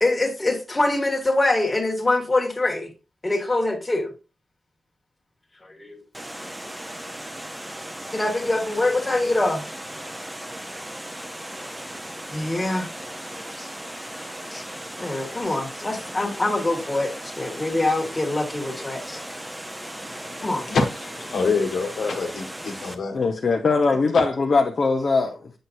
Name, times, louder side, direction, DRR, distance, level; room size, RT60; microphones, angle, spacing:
voice 1, 0.0-2.9 3.2-4.1 5.6-6.0 6.7-7.0 8.1-9.6 10.6-10.8 12.3-12.9 13.6-13.7 14.5-14.6 15.0-19.2 20.4-20.7, left 2 dB, 20° left, 1.8 m, -24 dB
Water, 6.1-23.0, right 1 dB, 10° right, 0.8 m, -37 dB
voice 2, 20.0-23.2, left 4 dB, 75° left, 1.5 m, -26 dB
voice 3, 23.1-25.5, left 4 dB, 50° left, 0.9 m, -21 dB
7.8 x 6.3 x 2.7 m
wide cardioid pair, 135°, 0 cm